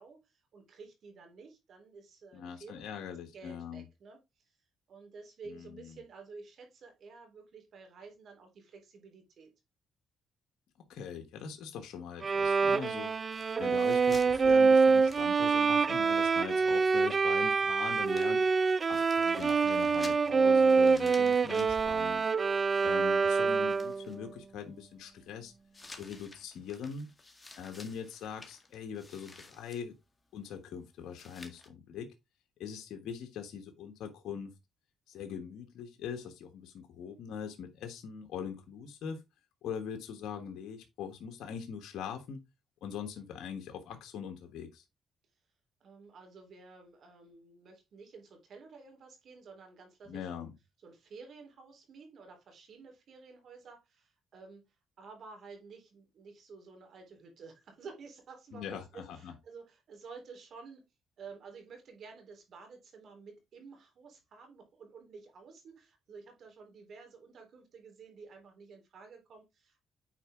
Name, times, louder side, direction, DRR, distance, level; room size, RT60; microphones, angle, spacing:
voice 1, 0.0-4.6 4.9-9.5 45.8-50.5 50.8-60.8 61.2-69.8, right 4 dB, 60° right, 3.5 m, -52 dB
voice 2, 2.3-3.8 5.4-6.0 10.9-13.1 13.6-18.5 18.9-22.3 22.8-25.5 25.9-27.1 27.6-30.0 30.3-32.1 32.6-34.5 35.1-39.2 39.6-42.4 42.8-44.8 50.0-50.5 58.5-59.3, left 7 dB, 80° left, 1.2 m, -42 dB
Bowed string instrument, 12.2-24.1, right 4 dB, 40° right, 0.3 m, -26 dB
sound 1, 13.3-15.9 16.2-16.3 17.5-17.6 17.8-23.2 23.5-24.2 25.7-29.8 31.1-31.7, left 2 dB, 20° left, 1.7 m, -52 dB
9.0 x 4.5 x 3.6 m
cardioid pair, 90°, 0 cm